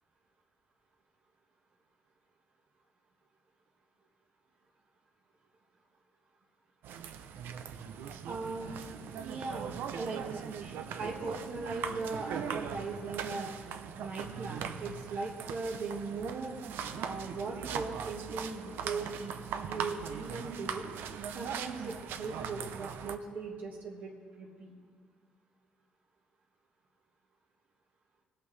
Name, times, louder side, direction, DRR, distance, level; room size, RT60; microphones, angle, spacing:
sound 1, 6.8-23.2, right 7 dB, 85° right, 0.6 m, -40 dB
voice 1, 8.3-8.7 9.1-13.6 14.0-16.5 17.0-19.3 19.6-20.9 21.3-24.7, right 3 dB, 55° right, -1 dB, 1.4 m, -39 dB
20.0 x 8.4 x 3.3 m, 2.1 s
cardioid pair, 160°, 3 cm